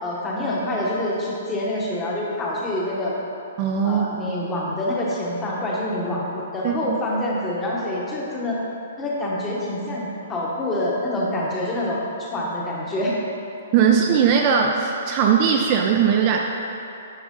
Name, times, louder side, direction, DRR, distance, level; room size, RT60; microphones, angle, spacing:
voice 1, 0.0-3.1 3.8-8.6 9.0-13.2, left 1 dB, 15° left, -4 dB, 1.0 m, -26 dB
voice 2, 3.6-4.1 6.6-7.0 13.7-16.4, right 7 dB, 30° right, 1 dB, 0.4 m, -19 dB
10.0 x 4.9 x 3.7 m, 2.8 s
hypercardioid pair, 170°, 0 cm